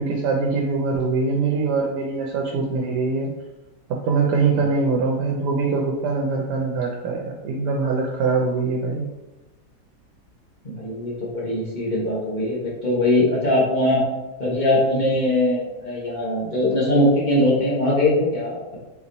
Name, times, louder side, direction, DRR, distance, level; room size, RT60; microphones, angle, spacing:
voice 1, 0.0-3.3 3.9-9.1, right 4 dB, 80° right, 0 dB, 1.1 m, -23 dB
voice 2, 10.6-14.0 14.4-18.8, left 1 dB, 35° left, -5 dB, 0.9 m, -21 dB
4.0 x 2.9 x 2.6 m, 1.1 s
omnidirectional pair, 1.8 m